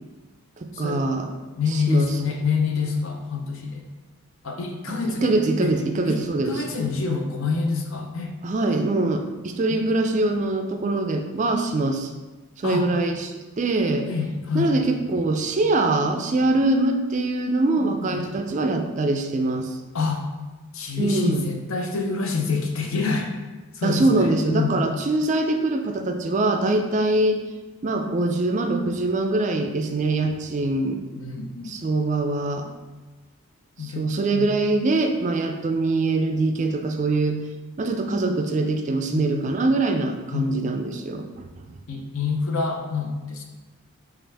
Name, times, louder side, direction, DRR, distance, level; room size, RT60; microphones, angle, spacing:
voice 1, 0.6-1.3 1.7-2.1 4.9-6.6 8.4-12.1 12.6-14.1 14.5-19.8 21.0-21.5 23.8-27.4 27.8-31.0 31.6-32.7 33.8-37.4 37.8-41.6, right 2 dB, 35° right, 4 dB, 0.3 m, -23 dB
voice 2, 1.5-3.9 4.4-5.3 5.6-5.7 6.0-8.4 9.7-9.9 12.6-12.9 14.1-14.7 17.8-18.3 19.9-20.3 20.7-23.3 23.7-24.8 31.2-31.8 33.8-34.5 39.1-39.3 40.3-40.7 41.9-43.4, left 4 dB, 65° left, 2 dB, 0.6 m, -27 dB
6.0 x 2.4 x 3.3 m, 1.2 s
head